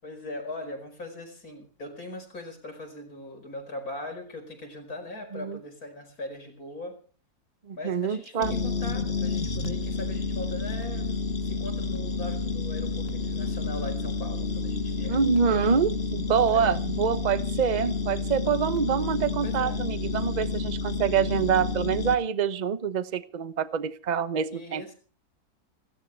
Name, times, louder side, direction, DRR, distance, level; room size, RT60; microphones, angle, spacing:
voice 1, 0.0-7.0 7.8-11.1 11.4-15.2 16.5-16.8 19.4-19.9 24.5-24.9, left 2 dB, 65° left, 6 dB, 5.4 m, -40 dB
voice 2, 7.7-8.5 15.1-24.9, right 7 dB, 35° right, 14 dB, 0.9 m, -26 dB
sound 1, 8.4-22.1, left 3 dB, 40° left, 2.0 m, -30 dB
28.5 x 13.0 x 3.4 m, 0.39 s
omnidirectional pair, 1.6 m